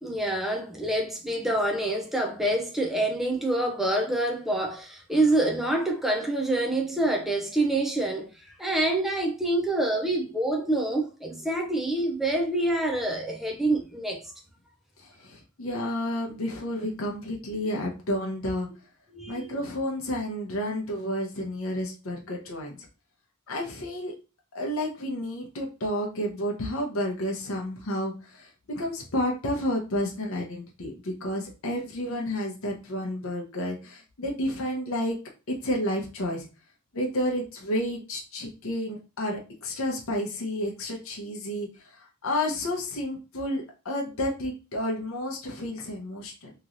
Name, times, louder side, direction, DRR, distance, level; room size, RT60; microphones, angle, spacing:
voice 1, 0.0-14.3 19.1-19.5, right 1 dB, ahead, 0.4 m, -26 dB
voice 2, 15.0-18.7 19.3-22.8 23.5-24.1 24.5-35.2 35.5-36.5 36.9-46.5, left 1 dB, 75° left, 0.7 m, -31 dB
3.0 x 2.9 x 2.5 m
head